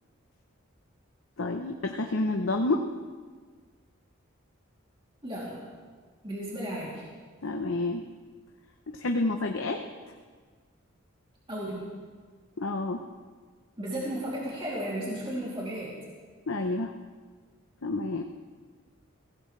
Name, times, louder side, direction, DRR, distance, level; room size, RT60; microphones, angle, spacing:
voice 1, 1.4-2.9 7.4-8.0 8.9-9.8 12.6-13.0 16.5-16.9 17.8-18.2, left 2 dB, 80° left, 3 dB, 0.8 m, -29 dB
voice 2, 5.2-5.7 6.2-7.0 11.5-11.9 13.8-16.0, right 1 dB, 25° right, -6 dB, 3.0 m, -34 dB
23.0 x 16.5 x 3.3 m, 1.5 s
head